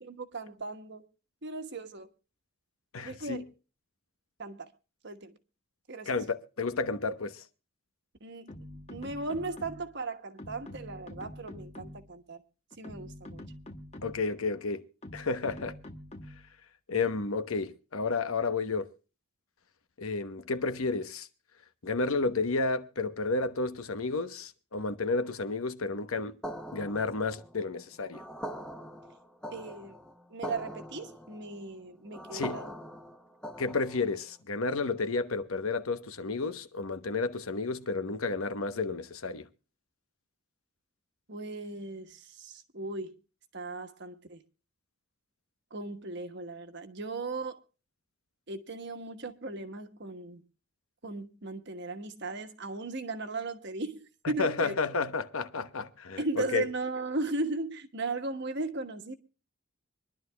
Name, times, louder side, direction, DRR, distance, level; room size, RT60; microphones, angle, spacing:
voice 1, 0.0-1.0 1.4-2.1 3.0-3.4 4.4-4.7 5.0-5.3 5.9-6.1 8.2-12.4 12.8-13.4 29.5-30.0 30.3-32.7 41.3-43.2 43.5-44.4 45.7-47.6 48.5-50.4 51.0-54.7 56.2-59.1, right 3 dB, 50° right, 1.3 m, -37 dB
voice 2, 2.9-3.4 6.0-7.4 14.0-14.8 15.1-15.8 16.9-18.9 20.0-21.3 21.8-26.4 26.7-28.2 32.3-32.6 33.6-39.5 54.2-56.7, left 3 dB, 75° left, 1.0 m, -31 dB
sound 1, 8.5-10.0 10.4-12.2 12.7-14.4 15.0-16.5, left 1 dB, 30° left, 1.2 m, -46 dB
sound 2, 26.4-34.2, equal, 5° left, 0.9 m, -43 dB
25.0 x 11.5 x 2.3 m
head